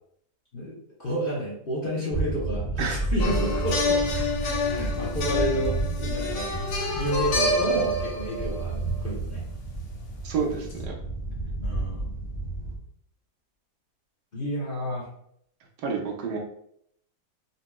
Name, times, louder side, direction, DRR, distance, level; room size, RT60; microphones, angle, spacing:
voice 1, 0.5-6.5 6.9-9.5 11.6-12.1 14.3-15.1, right 1 dB, 40° left, -6 dB, 0.9 m, -31 dB
sound 1, 2.1-12.8, right 2 dB, 30° right, 0.5 m, -31 dB
sound 2, 3.2-8.9 10.7-10.8, left 2 dB, 75° left, 1.3 m, -28 dB
sound 3, 6.5-8.3, left 1 dB, 45° right, 1.3 m, -40 dB
voice 2, 10.2-10.9 15.8-16.4, right 5 dB, 80° right, 1 dB, 1.3 m, -29 dB
4.0 x 2.9 x 2.3 m, 0.70 s
omnidirectional pair, 1.8 m